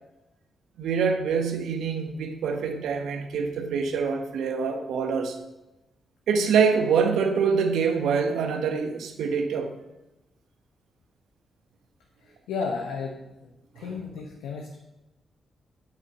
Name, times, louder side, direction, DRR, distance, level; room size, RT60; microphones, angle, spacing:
voice 1, 0.8-5.3 6.3-9.7 13.8-13.9, right 6 dB, 75° right, 5 dB, 1.1 m, -25 dB
voice 2, 12.5-13.5 13.8-14.8, left 5 dB, 80° left, 1 dB, 1.0 m, -33 dB
8.8 x 7.7 x 5.4 m, 1.0 s
hypercardioid pair, 40°, 0 cm